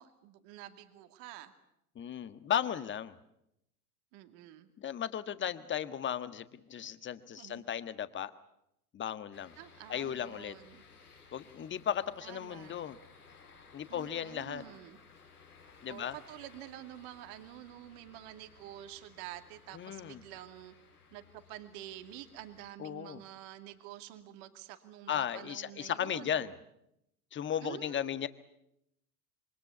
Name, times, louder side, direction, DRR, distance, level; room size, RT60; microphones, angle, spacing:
voice 1, 0.0-1.5 4.1-4.7 7.4-7.6 9.6-10.8 12.2-12.7 13.9-15.0 15.9-20.7 21.1-26.5 27.6-28.3, right 13 dB, 50° right, 8 dB, 2.5 m, -48 dB
voice 2, 1.9-3.2 4.8-8.3 8.9-9.5 9.9-10.5 11.3-13.0 13.7-14.6 15.8-16.1 19.7-20.2 22.8-23.2 25.1-26.5 27.3-28.3, left 9 dB, 25° left, 13 dB, 1.5 m, -35 dB
sound 1, 9.3-22.7, left 5 dB, 85° left, 4.0 m, -59 dB
27.0 x 24.5 x 8.4 m, 0.82 s
figure-of-eight pair, 80°, 44 cm